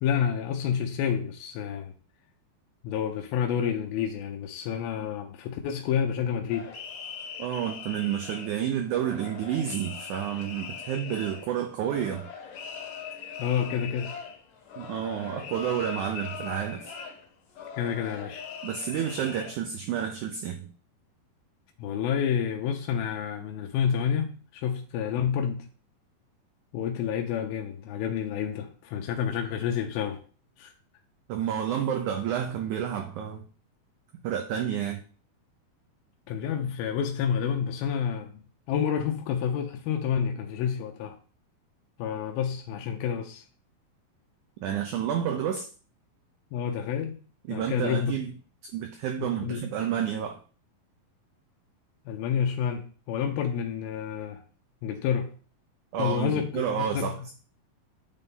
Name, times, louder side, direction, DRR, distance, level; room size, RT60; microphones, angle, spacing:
voice 1, 0.0-1.9 2.8-6.7 13.4-14.1 17.7-18.4 21.8-25.7 26.7-30.2 30.6-30.7 36.3-41.2 42.0-43.4 46.5-47.2 47.5-48.1 49.2-49.7 52.1-54.4 54.8-55.3 56.0-57.1, left 8 dB, 85° left, 3 dB, 2.5 m, -29 dB
sound 1, 6.5-19.5, left 6 dB, 70° left, 2.9 m, -41 dB
voice 2, 7.4-12.3 14.8-16.8 18.6-20.7 31.3-33.5 34.2-35.0 44.6-45.7 47.5-48.3 48.6-50.4 55.9-57.3, right 9 dB, 80° right, 5 dB, 1.8 m, -30 dB
9.1 x 3.8 x 4.0 m, 0.39 s
omnidirectional pair, 4.3 m